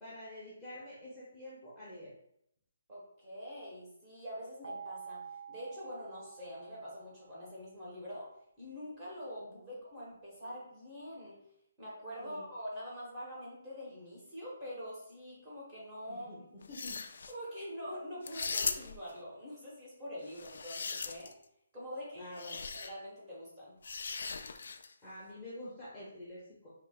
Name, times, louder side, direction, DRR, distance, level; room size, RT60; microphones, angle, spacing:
voice 1, 0.0-2.1 9.4-9.7 12.2-12.5 16.1-16.4 16.7-17.0 22.1-22.6 25.0-26.7, left 1 dB, 5° left, -10 dB, 0.8 m, -47 dB
voice 2, 2.9-8.3 8.6-11.4 11.8-16.3 17.3-21.3 21.7-22.4 22.7-23.7, equal, 15° right, -7 dB, 1.2 m, -45 dB
sound 1, 4.6-7.6, right 6 dB, 65° right, 1.0 m, -48 dB
sound 2, 16.6-17.3 18.2-19.1 20.3-21.4 22.4-22.9 23.8-24.9, left 4 dB, 60° left, 0.3 m, -39 dB
4.5 x 2.8 x 2.3 m, 0.75 s
hypercardioid pair, 170°, 0 cm